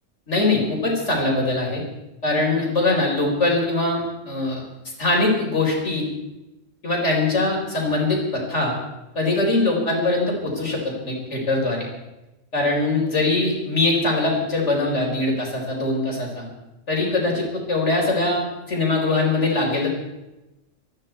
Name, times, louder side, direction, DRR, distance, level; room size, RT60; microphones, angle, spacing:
voice 1, 0.3-1.8 2.2-4.6 5.0-6.0 6.8-8.7 9.1-11.9 12.5-16.4 16.9-18.4 18.7-19.9, left 2 dB, 60° left, -1 dB, 4.7 m, -22 dB
20.0 x 14.0 x 4.5 m, 0.99 s
omnidirectional pair, 1.4 m